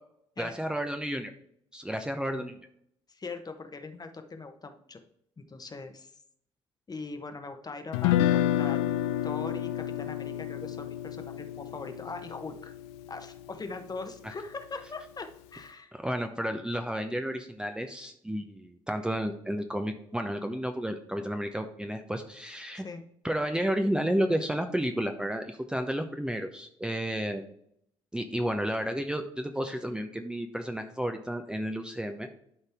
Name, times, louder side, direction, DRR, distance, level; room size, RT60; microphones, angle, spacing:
voice 1, 0.4-1.3 1.7-2.6 14.2-14.3 15.9-22.9 23.2-27.4 28.1-32.3, equal, 5° right, 6 dB, 0.7 m, -32 dB
voice 2, 3.1-5.0 5.4-6.1 6.9-8.8 9.2-12.7 13.1-16.0 22.7-23.1, left 3 dB, 25° left, 7 dB, 1.1 m, -41 dB
Guitar, 7.9-14.1, left 12 dB, 75° left, 0.4 m, -30 dB
11.5 x 4.1 x 3.5 m, 0.70 s
hypercardioid pair, 50°, 14 cm